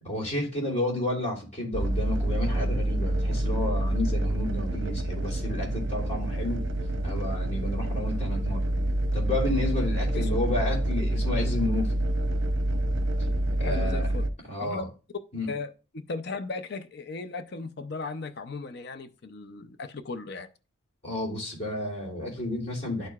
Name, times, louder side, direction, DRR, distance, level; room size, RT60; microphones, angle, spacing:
voice 1, 0.0-6.6 7.0-8.6 9.1-12.0 13.6-14.1 14.5-14.8 15.3-15.5 21.0-23.1, left 1 dB, 35° left, 3.1 m, -31 dB
sound 1, 1.7-14.3, right 1 dB, 65° right, 0.7 m, -27 dB
voice 2, 10.1-10.6 13.6-14.3 14.6-14.9 15.5-15.7 16.1-20.5, left 3 dB, 50° left, 0.5 m, -36 dB
11.5 x 4.6 x 2.4 m
head